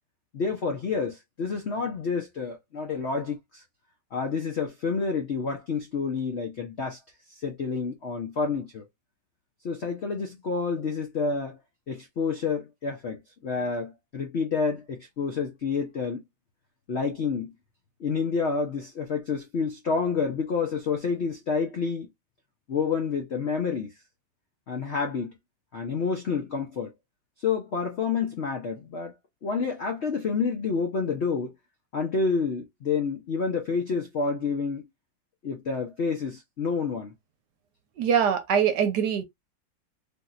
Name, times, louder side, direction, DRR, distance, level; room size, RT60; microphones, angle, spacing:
voice 1, 0.3-3.6 4.1-7.0 7.3-8.8 9.6-11.6 11.9-16.2 16.9-17.5 18.0-22.1 22.7-23.9 24.7-25.3 25.7-26.9 27.4-29.1 29.4-31.5 31.9-34.8 35.4-37.1, left 5 dB, 75° left, 0.6 m, -29 dB
voice 2, 38.0-39.2, right 8 dB, 70° right, 1.2 m, -23 dB
3.4 x 2.7 x 2.4 m
omnidirectional pair, 2.0 m